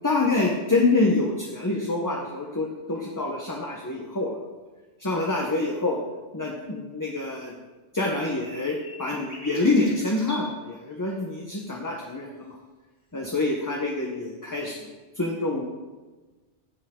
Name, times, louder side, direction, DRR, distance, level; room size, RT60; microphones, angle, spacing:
voice 1, 0.0-4.4 5.0-6.0 6.3-7.5 7.9-12.5 13.1-14.8 15.2-15.6, left 2 dB, 20° left, -1 dB, 0.9 m, -26 dB
sound 1, 8.2-10.5 13.2-13.3, equal, 90° left, 2.6 m, -43 dB
16.0 x 5.4 x 3.7 m, 1.3 s
omnidirectional pair, 1.1 m